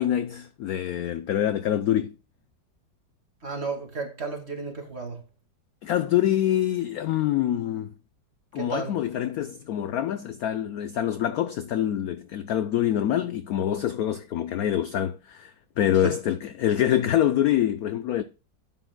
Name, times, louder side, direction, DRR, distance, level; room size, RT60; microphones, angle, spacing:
voice 1, 0.0-2.1 5.8-7.9 8.5-18.2, left 11 dB, 75° left, 0.8 m, -25 dB
voice 2, 3.4-5.2 8.6-9.0 16.0-16.1, right 3 dB, 35° right, 2.3 m, -33 dB
11.5 x 9.0 x 2.2 m
omnidirectional pair, 2.1 m